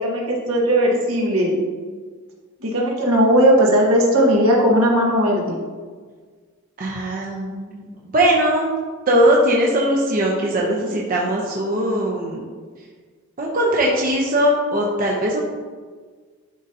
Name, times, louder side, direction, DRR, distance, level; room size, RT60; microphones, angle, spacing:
voice 1, 0.0-1.6 2.6-5.6, equal, 75° right, -2 dB, 1.5 m, -17 dB
voice 2, 6.8-7.9 8.1-8.7 9.1-12.4 13.4-15.4, right 1 dB, 40° right, -3 dB, 0.8 m, -20 dB
11.5 x 3.9 x 2.7 m, 1.5 s
head